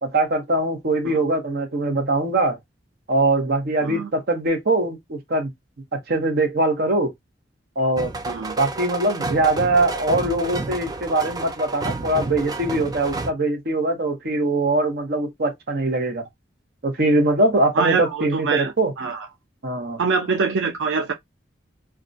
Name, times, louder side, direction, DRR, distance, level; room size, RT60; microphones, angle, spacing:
voice 1, 0.0-2.6 3.1-5.5 5.9-7.1 7.8-8.1 8.6-16.2 16.8-18.9 19.6-20.0, right 2 dB, 60° right, 0.8 m, -22 dB
sound 1, 8.0-13.3, right 3 dB, 20° right, 0.3 m, -30 dB
voice 2, 8.3-8.6 17.7-19.3 20.0-21.1, right 5 dB, 90° right, 0.5 m, -24 dB
2.3 x 2.1 x 2.5 m
head